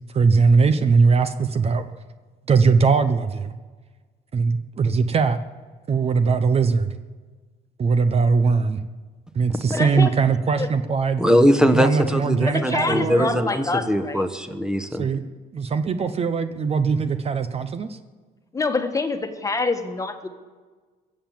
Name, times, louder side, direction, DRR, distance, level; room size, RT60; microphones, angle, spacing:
voice 1, 0.1-1.9 2.5-3.5 4.3-5.4 5.9-6.9 7.8-8.8 9.3-11.2 11.7-13.4 14.9-18.0, right 5 dB, 35° right, 10 dB, 0.8 m, -20 dB
voice 2, 9.7-10.1 10.6-10.7 12.5-14.2 18.5-20.3, left 3 dB, 20° left, 7 dB, 1.4 m, -26 dB
voice 3, 11.2-15.0, equal, 5° right, 9 dB, 1.1 m, -21 dB
22.0 x 7.5 x 7.4 m, 1.4 s
cardioid pair, 110°, 17 cm